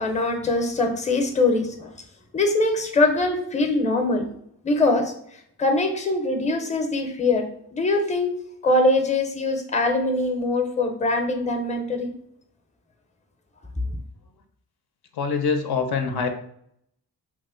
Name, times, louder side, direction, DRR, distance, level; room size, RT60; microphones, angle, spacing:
voice 1, 0.0-1.9 2.3-4.3 4.6-5.1 5.6-7.4 7.7-8.3 8.6-12.1, left 2 dB, 20° left, 5 dB, 0.6 m, -22 dB
voice 2, 15.1-16.3, left 5 dB, 70° left, 5 dB, 0.5 m, -24 dB
2.9 x 2.1 x 3.7 m, 0.69 s
cardioid pair, 65°, 39 cm